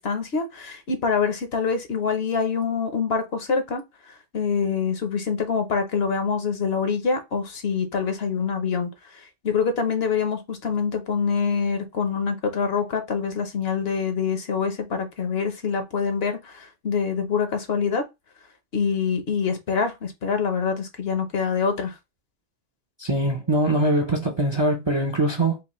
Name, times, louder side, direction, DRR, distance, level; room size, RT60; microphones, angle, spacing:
voice 1, 0.0-3.8 4.1-18.0 18.7-21.9, left 5 dB, 60° left, 1.0 m, -25 dB
voice 2, 23.0-25.6, right 1 dB, 30° right, 0.5 m, -22 dB
4.9 x 2.0 x 3.0 m
omnidirectional pair, 1.2 m